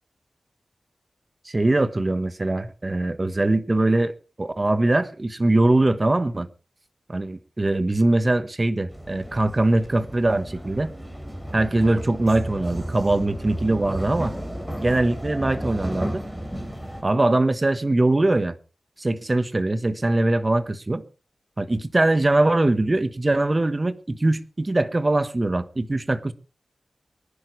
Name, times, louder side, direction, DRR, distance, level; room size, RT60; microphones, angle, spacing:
voice 1, 1.4-4.1 4.4-6.5 7.1-10.9 11.5-14.3 14.8-16.2 17.0-18.5 19.0-21.0 21.6-26.3, right 2 dB, 30° right, 1.2 m, -22 dB
sound 1, 8.9-17.0, equal, 10° right, 4.8 m, -33 dB
24.0 x 10.5 x 3.3 m
wide cardioid pair, 80°, 0 cm